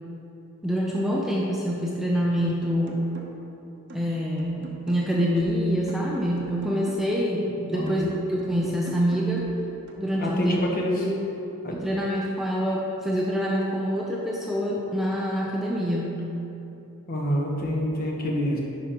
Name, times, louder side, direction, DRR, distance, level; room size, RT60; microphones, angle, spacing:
voice 1, 0.6-3.1 3.9-9.5 10.0-10.6 11.1-11.2 11.7-16.2, equal, ahead, -4 dB, 0.5 m, -26 dB
sound 1, 2.4-3.5 3.9-7.4 7.9-10.4, right 1 dB, 50° right, 0.8 m, -44 dB
voice 2, 10.2-11.1 11.6-11.7 17.1-18.6, equal, 40° left, -1 dB, 1.0 m, -26 dB
11.0 x 4.9 x 2.9 m, 2.8 s
head